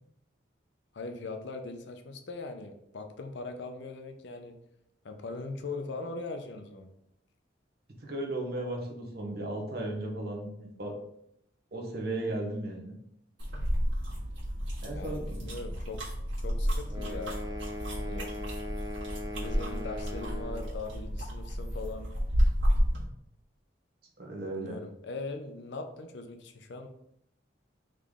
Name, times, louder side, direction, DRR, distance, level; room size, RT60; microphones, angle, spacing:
voice 1, 0.9-4.6 5.0-6.9 14.9-16.0 16.4-17.4 18.0-18.3 19.3-22.1 24.5-26.9, left 3 dB, 70° left, 6 dB, 0.5 m, -40 dB
voice 2, 8.0-11.0 11.7-12.9 14.8-15.4 24.2-24.8, right 1 dB, 55° right, 1 dB, 0.9 m, -35 dB
sound 1, 13.4-23.0, equal, 80° right, 1.6 m, -31 dB
sound 2, 16.9-20.8, left 1 dB, 20° right, 0.4 m, -40 dB
3.8 x 3.2 x 3.6 m, 0.75 s
head